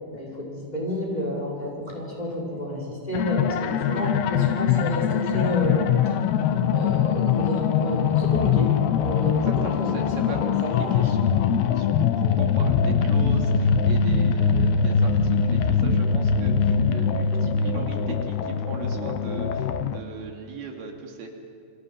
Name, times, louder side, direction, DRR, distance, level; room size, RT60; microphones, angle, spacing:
voice 1, 0.1-5.9 6.7-10.1 10.4-11.0, left 1 dB, 10° left, -3 dB, 5.9 m, -30 dB
sound 1, 3.1-20.0, left 6 dB, 90° left, 3.1 m, -22 dB
voice 2, 9.4-21.4, right 4 dB, 80° right, 2 dB, 4.4 m, -38 dB
29.0 x 26.0 x 5.7 m, 2.3 s
omnidirectional pair, 4.4 m